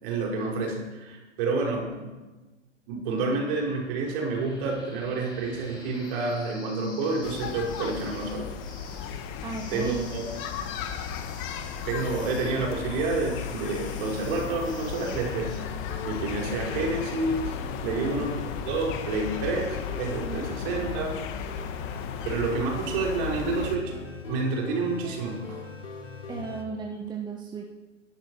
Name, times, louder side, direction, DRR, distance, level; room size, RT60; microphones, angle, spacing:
voice 1, 0.0-2.1 2.9-8.5 9.7-10.2 11.9-15.7 16.0-21.1 22.2-23.9 24.3-25.7, right 3 dB, 45° right, -1 dB, 5.4 m, -29 dB
sound 1, 3.4-15.6, left 2 dB, 10° left, 3.7 m, -49 dB
sound 2, 7.2-23.8, left 7 dB, 35° left, 1.6 m, -35 dB
voice 2, 9.4-10.1 17.9-18.3 20.2-20.5 26.3-27.6, right 4 dB, 10° right, 1 dB, 1.5 m, -35 dB
sound 3, 13.9-26.6, left 4 dB, 80° left, 3.6 m, -40 dB
23.0 x 11.5 x 4.8 m, 1.2 s
hypercardioid pair, 115°, 37 cm